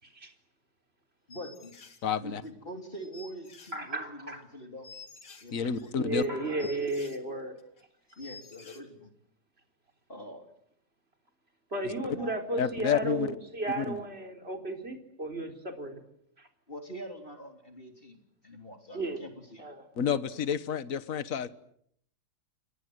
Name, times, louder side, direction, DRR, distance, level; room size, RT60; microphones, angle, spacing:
voice 1, 0.0-0.3 3.7-4.4 5.6-7.6 11.7-16.0 16.4-16.5 18.9-19.2 19.6-19.8, right 2 dB, 35° right, 5 dB, 4.4 m, -34 dB
sound 1, 1.3-2.0 2.4-2.5 2.9-4.1 4.4-4.5 4.8-7.2 7.6-7.8 8.1-8.8, left 3 dB, 80° left, 3.4 m, -51 dB
voice 2, 1.3-1.7 2.2-4.9 5.4-5.9 8.2-9.1 10.1-10.5 12.1-12.4 16.7-19.7, equal, 30° left, 5 dB, 3.6 m, -44 dB
voice 3, 2.0-2.4 5.5-6.2 12.6-13.3 13.7-14.0 20.0-21.5, left 7 dB, 55° left, 13 dB, 1.7 m, -29 dB
29.5 x 23.5 x 8.0 m, 0.70 s
omnidirectional pair, 1.8 m